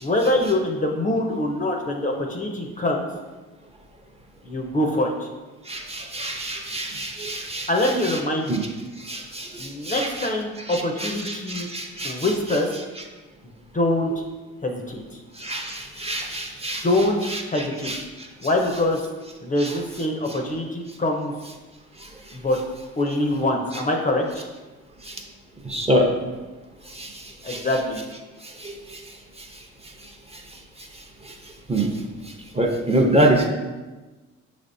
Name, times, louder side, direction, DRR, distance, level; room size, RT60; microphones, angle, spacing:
voice 1, 0.0-3.1 4.4-5.3 7.4-8.6 9.6-11.7 12.0-12.7 13.7-14.2 14.6-15.2 16.8-17.9 18.4-19.0 19.4-21.3 22.3-22.6 23.0-24.5 27.4-28.0, left 1 dB, 25° left, 1 dB, 0.5 m, -24 dB
voice 2, 5.7-7.7 8.0-8.2 8.5-8.6 9.1-10.3 10.7-12.3 15.4-16.8 17.3-17.4 17.8-18.0 19.6-19.7 25.7-26.1 27.0-27.1 27.5-27.6 28.6-28.7 31.7-31.9 32.6-33.5, right 1 dB, 20° right, 1 dB, 0.6 m, -25 dB
6.0 x 3.4 x 2.6 m, 1.2 s
cardioid pair, 90°, 30 cm